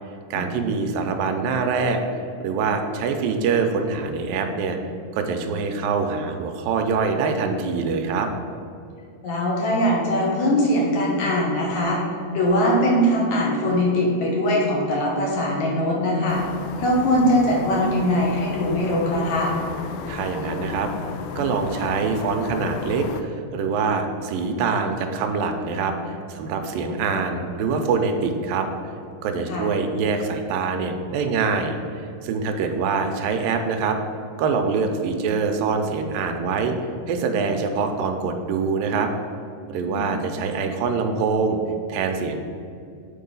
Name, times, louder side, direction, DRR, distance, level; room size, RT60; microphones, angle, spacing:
voice 1, 0.3-2.0 2.4-4.8 5.1-8.3 20.1-20.9 21.4-28.7 29.2-31.8 32.2-34.0 34.4-36.7 37.1-39.1 39.7-41.6 41.9-42.4, right 5 dB, 90° right, 5 dB, 2.4 m, -24 dB
voice 2, 9.2-12.0 12.3-16.4 16.8-19.5 29.5-29.7 39.9-40.2, equal, 65° left, -2 dB, 2.3 m, -21 dB
sound 1, 16.3-23.2, left 6 dB, 90° left, 1.7 m, -33 dB
8.1 x 4.7 x 5.3 m, 2.4 s
omnidirectional pair, 4.0 m